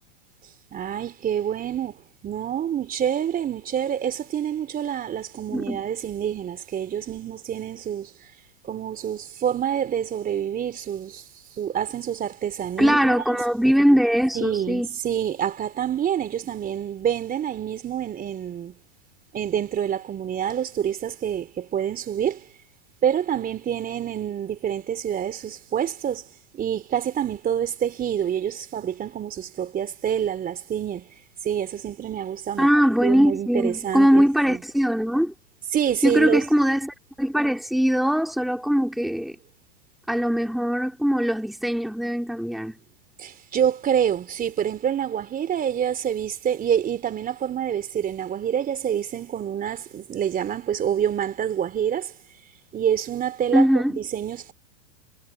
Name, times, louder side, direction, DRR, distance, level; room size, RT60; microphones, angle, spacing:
voice 1, 0.7-8.3 8.6-11.2 11.6-13.4 14.3-18.8 19.3-22.5 23.0-26.3 26.5-31.1 31.4-32.7 33.0-34.6 35.7-36.5 43.2-52.1 52.7-54.5, right 9 dB, 25° right, 3.4 m, -27 dB
voice 2, 12.8-14.9 32.6-35.3 36.0-39.4 40.1-42.7 53.5-53.9, equal, ahead, 3.4 m, -21 dB
hypercardioid pair, 120°, 34 cm